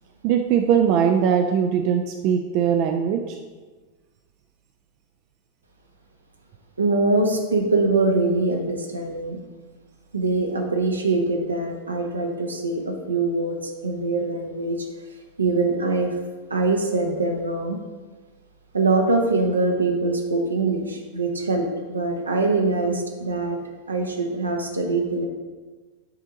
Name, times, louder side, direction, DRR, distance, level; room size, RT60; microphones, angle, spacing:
voice 1, 0.2-3.4, right 8 dB, 45° right, 4 dB, 0.5 m, -20 dB
voice 2, 6.8-9.4 10.1-14.9 15.4-16.1 16.5-17.8 18.7-23.6 23.9-25.3, right 3 dB, 80° right, 2 dB, 1.0 m, -23 dB
8.7 x 3.6 x 5.0 m, 1.4 s
figure-of-eight pair, 90°, 0 cm